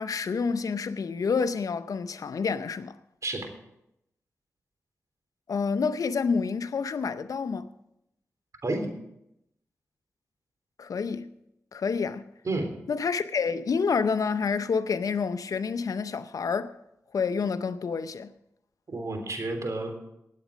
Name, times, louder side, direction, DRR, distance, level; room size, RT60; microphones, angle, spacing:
voice 1, 0.0-3.0 5.5-7.7 10.8-11.3 11.7-12.3 12.9-16.8 17.1-18.3, left 5 dB, 70° left, 0.7 m, -28 dB
voice 2, 18.9-20.0, right 2 dB, 60° right, 3.5 m, -30 dB
18.5 x 8.4 x 5.1 m
cardioid pair, 45°, 6 cm